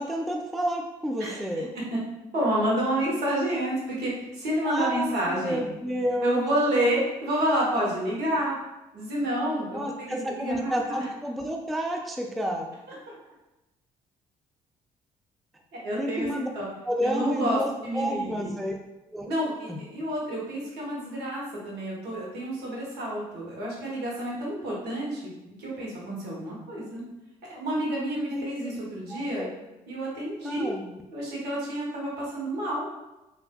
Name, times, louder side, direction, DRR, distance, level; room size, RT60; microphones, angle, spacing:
voice 1, 0.0-1.7 4.6-6.4 9.7-12.7 16.0-16.5 16.8-18.7 19.1-19.3 19.7-19.8 28.3-28.7 29.1-29.5 30.4-30.9, equal, ahead, 2 dB, 0.3 m, -30 dB
voice 2, 2.3-5.6 6.2-8.5 8.9-11.1 15.8-16.3 16.5-16.7 17.0-18.5 19.3-25.3 25.6-27.0 27.5-29.5 29.9-30.7 31.1-32.9, right 1 dB, 65° right, -4 dB, 1.1 m, -29 dB
3.3 x 2.5 x 2.2 m, 0.98 s
figure-of-eight pair, 45°, 19 cm